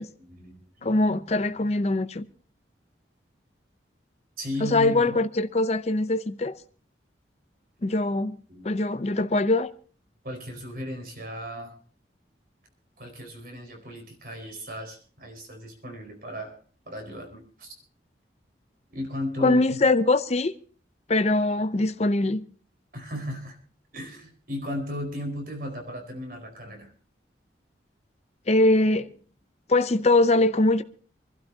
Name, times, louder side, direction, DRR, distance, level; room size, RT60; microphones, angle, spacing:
voice 1, 0.0-0.9 4.4-5.2 8.5-8.7 10.2-11.8 13.0-16.6 16.9-17.7 18.9-19.8 22.9-23.6 23.9-26.9, equal, 50° right, 4.6 m, -36 dB
voice 2, 0.8-2.2 4.6-6.6 7.8-8.3 8.6-9.7 19.4-20.5 21.1-22.4 28.5-29.1 29.7-30.8, left 2 dB, 35° left, 0.6 m, -22 dB
27.0 x 12.0 x 2.8 m
head